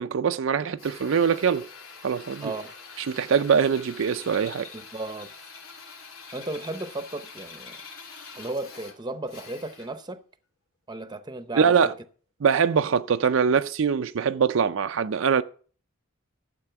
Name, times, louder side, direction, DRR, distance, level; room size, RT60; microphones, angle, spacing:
voice 1, 0.0-1.6 2.0-2.5 3.0-4.7 11.6-11.9 12.4-15.4, right 6 dB, 65° right, 0.4 m, -23 dB
Drill, 0.8-10.0, left 4 dB, 70° left, 2.6 m, -45 dB
voice 2, 2.4-2.7 4.7-5.3 6.3-7.8 8.4-10.2 10.9-11.9, right 2 dB, 20° right, 0.8 m, -35 dB
12.0 x 7.6 x 5.8 m
head